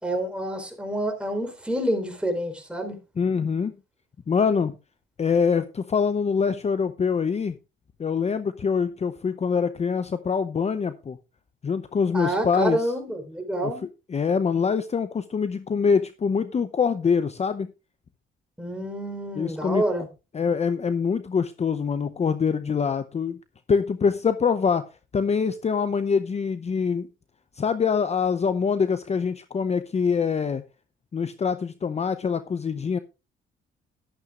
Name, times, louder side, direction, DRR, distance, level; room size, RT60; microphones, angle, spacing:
voice 1, 0.0-3.0 12.1-13.8 18.6-20.1, right 1 dB, 5° right, 4.1 m, -28 dB
voice 2, 3.2-3.7 4.3-4.7 5.2-7.5 8.0-11.2 11.6-12.9 13.6-13.7 14.1-17.7 19.4-19.8 20.3-23.4 23.7-24.9 25.1-27.1 27.6-30.6 31.1-33.0, left 6 dB, 35° left, 0.7 m, -24 dB
12.5 x 11.5 x 2.5 m
cardioid pair, 90°, 20 cm